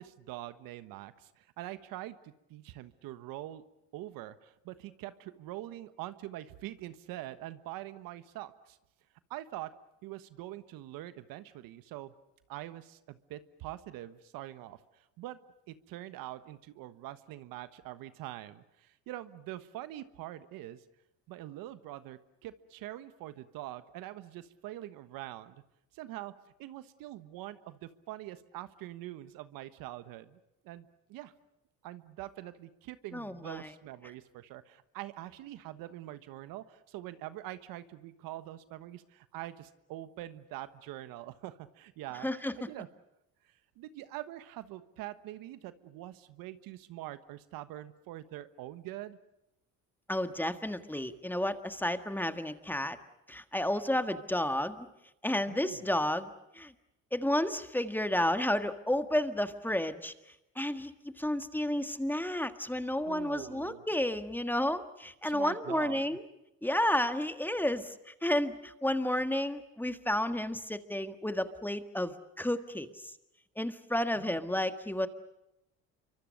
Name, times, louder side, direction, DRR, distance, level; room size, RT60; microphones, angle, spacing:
voice 1, 0.0-3.6 3.9-8.8 9.3-9.7 10.0-12.1 12.5-15.4 15.7-20.8 21.3-25.6 25.9-26.3 26.6-30.4 30.6-31.3 31.8-42.9 43.8-49.2 55.5-55.9 63.0-63.8 65.2-66.0 74.2-74.4, right 15 dB, 75° right, 13 dB, 1.4 m, -44 dB
voice 2, 33.1-33.7 42.2-42.5 50.1-53.0 53.3-54.9 55.2-56.3 56.5-56.7 57.1-60.1 60.5-60.9 61.2-66.2 66.6-73.1 73.6-75.1, left 1 dB, 5° left, 9 dB, 1.7 m, -31 dB
27.5 x 24.0 x 6.6 m, 0.87 s
supercardioid pair, 90°, 34 cm